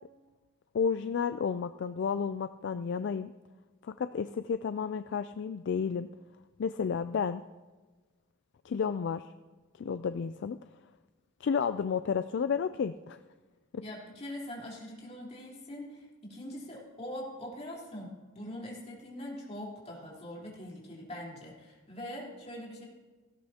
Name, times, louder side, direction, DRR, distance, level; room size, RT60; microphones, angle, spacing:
voice 1, 0.7-3.3 3.8-6.1 6.6-7.4 8.6-9.3 9.7-10.6 11.4-13.2, left 6 dB, 55° left, 11 dB, 0.3 m, -31 dB
voice 2, 13.8-22.8, left 1 dB, 30° left, -4 dB, 3.8 m, -43 dB
17.0 x 16.0 x 2.9 m, 1.3 s
head